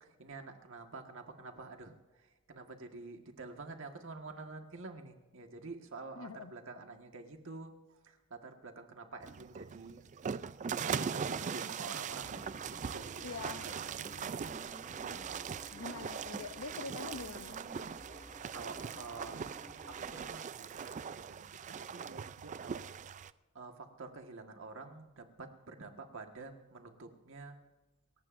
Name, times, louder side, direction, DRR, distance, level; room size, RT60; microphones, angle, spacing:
voice 1, 0.0-1.9 2.5-10.0 10.8-12.5 12.7-14.4 15.1-15.5 18.3-19.5 19.9-21.5 21.9-22.8 23.6-27.6, right 3 dB, 65° right, 5 dB, 1.6 m, -48 dB
voice 2, 6.2-6.6 13.2-13.9 15.7-17.7, left 4 dB, 75° left, 13 dB, 0.7 m, -45 dB
sound 1, 9.2-23.3, right 7 dB, 35° right, 0.4 m, -41 dB
sound 2, 12.1-20.3, left 1 dB, 30° left, 2.8 m, -54 dB
27.5 x 14.5 x 2.6 m, 1.2 s
head